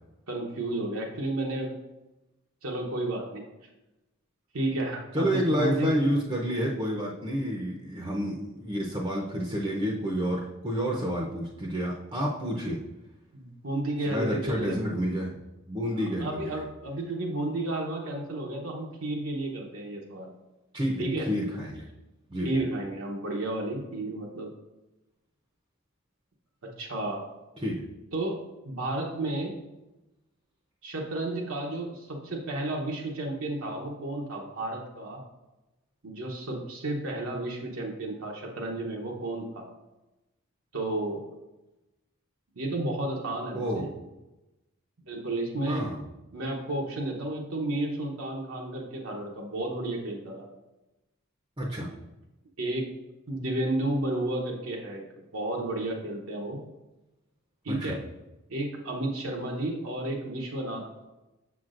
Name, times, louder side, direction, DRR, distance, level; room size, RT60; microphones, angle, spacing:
voice 1, 0.3-1.7 2.6-3.4 4.5-6.0 13.3-14.8 16.0-20.3 21.0-21.3 22.4-24.5 26.8-27.2 28.1-28.4 28.6-29.5 30.8-35.2 36.0-39.6 40.7-41.2 42.6-43.9 45.1-45.8 46.3-50.5 52.6-52.8 53.3-55.0 55.3-56.6 57.6-58.0 58.5-61.0, right 2 dB, 75° right, -1 dB, 0.9 m, -32 dB
voice 2, 5.1-12.8 14.1-15.4 15.7-16.6 20.7-21.8 22.3-22.5 27.6-27.8 43.5-43.9 45.7-46.0 51.6-51.9 57.7-58.0, equal, 25° right, -2 dB, 0.6 m, -29 dB
7.0 x 6.0 x 2.5 m, 1.0 s
head